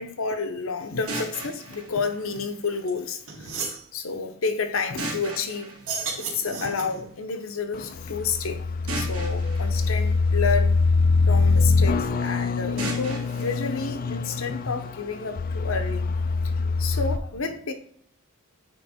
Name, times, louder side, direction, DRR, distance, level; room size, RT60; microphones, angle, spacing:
voice 1, 0.0-3.5 3.9-5.7 6.2-8.6 8.9-10.9 11.3-16.1 16.8-17.7, left 4 dB, 65° left, 0.8 m, -30 dB
sound 1, 1.1-3.1 5.0-6.9 8.9-11.1 12.8-14.8, right 2 dB, 85° right, 2.3 m, -38 dB
sound 2, 2.9-3.0 3.3-3.8 5.7-7.1, right 4 dB, 65° right, 2.4 m, -33 dB
sound 3, 7.7-17.2, left 4 dB, 40° left, 0.4 m, -24 dB
9.2 x 3.1 x 4.3 m
head